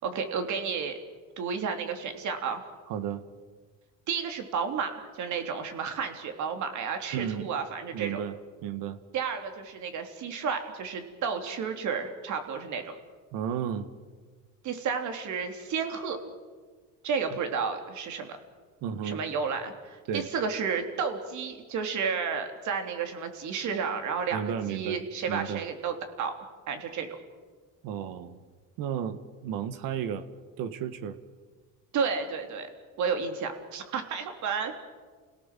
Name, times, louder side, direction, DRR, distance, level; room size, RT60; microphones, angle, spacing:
voice 1, 0.0-0.9 1.4-2.6 4.1-8.2 9.1-12.9 14.6-16.2 17.0-18.4 19.0-26.3 26.7-27.1 31.9-32.7 33.0-34.7, right 6 dB, 60° right, 6 dB, 3.5 m, -32 dB
voice 2, 2.9-3.2 7.1-7.5 7.9-8.4 8.6-9.0 13.3-13.9 18.8-19.2 20.1-20.3 24.3-25.0 25.3-25.6 27.8-28.4 28.8-30.3 30.6-31.2, right 8 dB, 80° right, 12 dB, 1.9 m, -33 dB
30.0 x 17.5 x 7.6 m, 1.5 s
cardioid pair, 125°, 33 cm